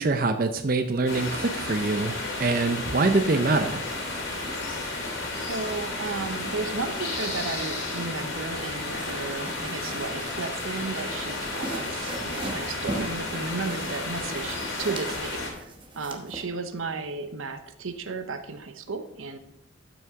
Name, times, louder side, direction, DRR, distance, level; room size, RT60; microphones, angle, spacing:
voice 1, 0.0-3.8, right 3 dB, 45° right, 7 dB, 0.5 m, -24 dB
sound 1, 1.1-15.5, left 2 dB, 80° left, 3.2 m, -32 dB
voice 2, 5.4-19.4, right 4 dB, 85° right, 8 dB, 0.9 m, -34 dB
sound 2, 8.9-16.4, right 1 dB, 25° right, 1.0 m, -40 dB
12.5 x 6.1 x 3.7 m, 0.78 s
head